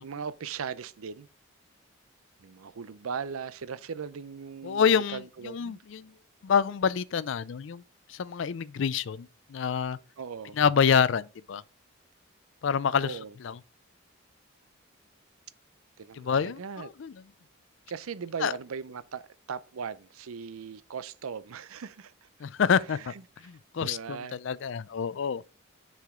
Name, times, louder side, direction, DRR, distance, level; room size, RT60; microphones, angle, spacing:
voice 1, 0.0-1.3 2.4-5.8 10.2-10.6 13.0-13.4 16.0-16.9 17.9-22.3 22.9-23.2 23.8-24.4, right 6 dB, 90° right, 0.5 m, -39 dB
voice 2, 4.6-6.1 6.4-7.8 8.1-10.0 10.6-11.6 12.6-13.2 13.4-13.6 16.2-17.1 18.4-18.5 22.4-23.1 23.4-25.4, left 7 dB, 60° left, 0.4 m, -27 dB
6.6 x 4.9 x 3.6 m
head